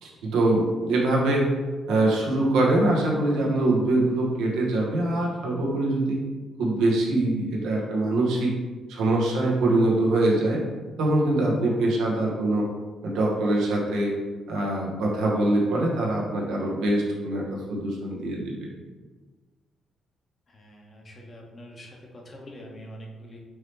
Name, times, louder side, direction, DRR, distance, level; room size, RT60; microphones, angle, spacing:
voice 1, 0.0-1.4 1.9-6.2 6.6-8.5 8.9-10.6 11.0-12.7 13.0-14.1 14.5-18.5, right 2 dB, 90° right, -3 dB, 1.0 m, -23 dB
voice 2, 20.5-23.4, equal, 35° left, 0 dB, 0.9 m, -44 dB
4.6 x 3.0 x 3.3 m, 1.3 s
cardioid pair, 90°, 0 cm